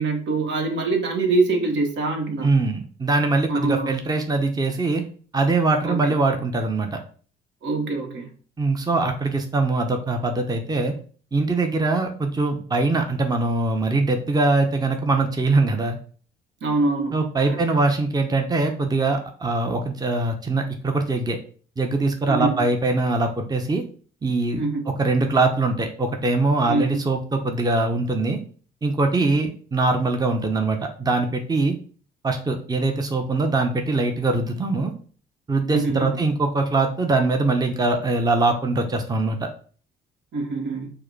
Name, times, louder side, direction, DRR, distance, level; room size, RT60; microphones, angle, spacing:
voice 1, 0.0-2.5 3.5-3.9 5.8-6.2 7.6-8.3 16.6-17.1 17.5-17.6 22.3-22.6 24.6-24.8 26.7-27.0 35.7-36.1 40.3-40.9, right 3 dB, 65° right, 3 dB, 1.1 m, -24 dB
voice 2, 2.4-5.0 5.3-7.0 8.6-10.9 11.3-16.0 17.1-21.4 21.8-23.8 24.2-24.6 25.0-28.4 28.8-31.7 32.2-34.9 35.5-39.5, right 3 dB, 20° right, 4 dB, 0.7 m, -22 dB
4.7 x 2.1 x 4.6 m, 0.44 s
hypercardioid pair, 55°, 20 cm